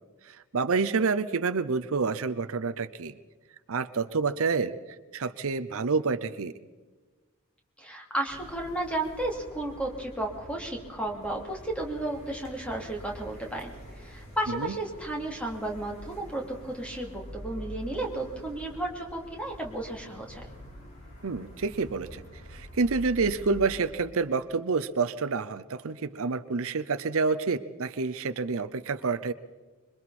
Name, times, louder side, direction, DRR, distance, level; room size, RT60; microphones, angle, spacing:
voice 1, 0.3-3.1 3.7-4.7 5.1-6.5 14.6-14.7 21.2-22.2 22.5-29.3, right 4 dB, 70° right, 12 dB, 0.7 m, -28 dB
voice 2, 7.8-20.4, right 1 dB, 5° left, 0 dB, 3.2 m, -33 dB
sound 1, 8.3-23.9, equal, 60° left, 6.7 m, -46 dB
26.0 x 23.0 x 4.3 m, 1.3 s
head